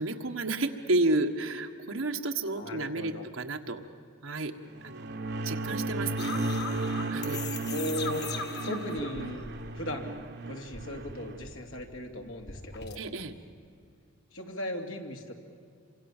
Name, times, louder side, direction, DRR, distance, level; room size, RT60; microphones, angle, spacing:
voice 1, 0.0-3.8 4.2-4.5 4.8-5.1 5.4-6.3 7.1-7.4 13.0-13.3, right 2 dB, 85° right, 5 dB, 1.6 m, -31 dB
voice 2, 2.5-3.3 7.7-8.3 8.7-9.4 9.7-10.2 10.5-13.0 14.3-15.3, left 1 dB, 85° left, 3 dB, 2.7 m, -37 dB
sound 1, 4.7-11.4, right 2 dB, 55° right, 1.1 m, -34 dB
sound 2, 6.2-10.2 10.5-13.0, left 5 dB, 55° left, 1.7 m, -40 dB
28.0 x 25.0 x 7.4 m, 2.3 s
head